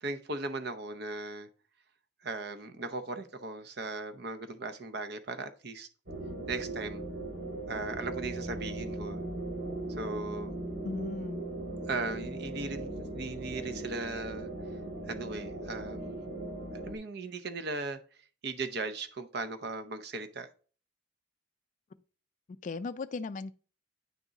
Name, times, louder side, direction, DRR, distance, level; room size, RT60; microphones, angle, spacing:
voice 1, 0.0-1.5 2.2-5.9 6.5-7.0 7.7-9.2 10.0-10.5 11.9-14.5 15.1-16.3 16.8-18.0 18.4-20.5, right 3 dB, 55° right, 0.7 m, -38 dB
sound 1, 6.1-17.0, right 2 dB, 80° right, 2.4 m, -39 dB
voice 2, 10.8-11.4 22.6-23.5, left 3 dB, 40° left, 0.3 m, -36 dB
9.1 x 3.7 x 4.0 m
head